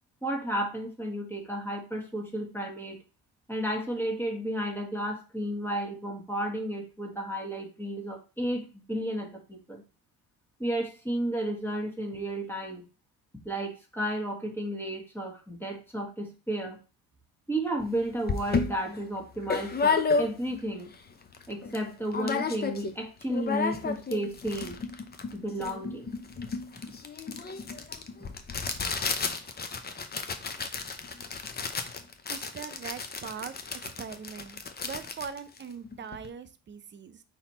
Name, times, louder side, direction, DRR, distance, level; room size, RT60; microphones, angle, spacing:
voice 1, 0.2-3.0 3.5-9.8 10.6-12.8 13.4-16.8 17.5-20.9 21.5-24.8 25.3-26.1, right 1 dB, 5° left, 1 dB, 1.4 m, -33 dB
sound 1, 17.8-17.9 18.3-20.7 21.1-21.2 21.3-21.8 22.1-22.9 23.2-36.3, left 4 dB, 25° left, 0.7 m, -32 dB
voice 2, 32.3-33.5 33.8-37.2, right 7 dB, 30° right, 11 dB, 0.6 m, -41 dB
4.0 x 3.0 x 4.3 m, 0.32 s
supercardioid pair, 75°, 36 cm